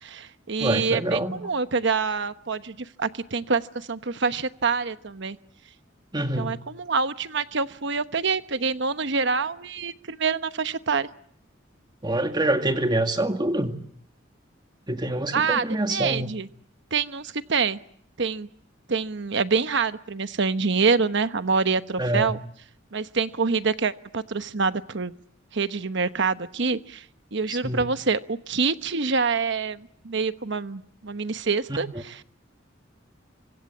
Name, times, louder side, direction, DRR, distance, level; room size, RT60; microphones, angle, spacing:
voice 1, 0.0-5.4 6.4-11.1 15.3-16.5 16.9-17.8 18.2-18.5 18.9-22.4 22.9-25.1 25.5-27.0 27.3-32.2, right 4 dB, 65° right, 11 dB, 1.1 m, -26 dB
voice 2, 0.6-1.4 6.1-6.6 12.0-13.8 14.9-16.3 22.0-22.4 27.5-27.8 31.7-31.8, right 1 dB, 25° right, 6 dB, 2.2 m, -26 dB
26.0 x 25.0 x 7.3 m, 0.65 s
head